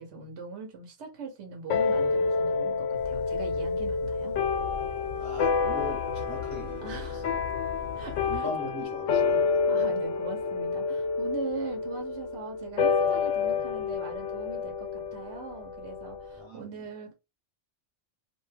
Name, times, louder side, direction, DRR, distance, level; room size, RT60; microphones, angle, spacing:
voice 1, 0.0-4.3 6.8-7.4 8.0-8.5 9.7-17.1, right 4 dB, 65° right, 1.0 m, -41 dB
sound 1, 1.7-16.4, left 5 dB, 85° left, 0.9 m, -29 dB
sound 2, 2.9-8.4, left 5 dB, 55° left, 0.5 m, -41 dB
voice 2, 5.2-7.3 8.2-9.6 16.3-16.8, equal, 25° right, 0.9 m, -40 dB
2.4 x 2.2 x 3.1 m
omnidirectional pair, 1.3 m